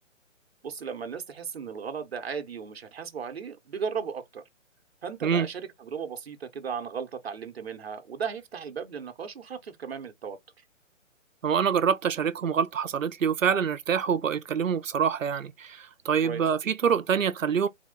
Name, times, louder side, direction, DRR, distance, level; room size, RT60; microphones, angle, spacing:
voice 1, 0.6-4.4 5.0-10.4 16.2-16.4, right 6 dB, 50° right, 1.1 m, -36 dB
voice 2, 11.4-17.7, right 7 dB, 80° right, 0.8 m, -26 dB
3.7 x 3.0 x 3.8 m
hypercardioid pair, 160°, 39 cm